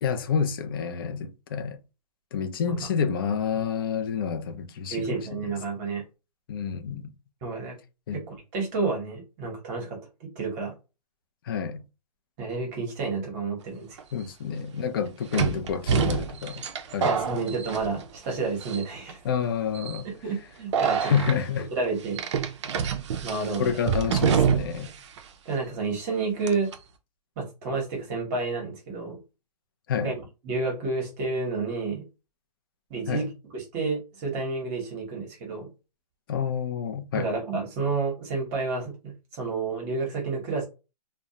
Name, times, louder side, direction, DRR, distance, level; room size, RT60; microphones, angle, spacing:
voice 1, 0.0-1.8 2.3-5.2 6.5-7.1 8.1-8.2 11.5-11.8 14.1-16.6 16.9-17.2 19.2-20.1 21.0-21.7 23.6-24.9 29.9-30.1 33.1-33.3 36.3-37.3, left 7 dB, 35° left, 0.4 m, -28 dB
voice 2, 4.9-6.0 7.4-7.8 8.1-10.7 12.4-14.0 17.0-19.2 20.2-21.1 21.7-22.2 23.2-23.8 25.4-26.7 27.4-29.2 30.0-30.2 30.4-32.1 32.9-33.3 33.5-35.7 37.1-40.6, right 4 dB, 25° right, 0.9 m, -30 dB
sound 1, 14.0-14.1 15.3-18.3 18.6-19.1 19.7-20.0 20.7-21.4 22.2-24.9 25.2-25.3 26.5-26.8, right 7 dB, 45° right, 0.4 m, -26 dB
2.3 x 2.0 x 2.7 m
hypercardioid pair, 155°, 21 cm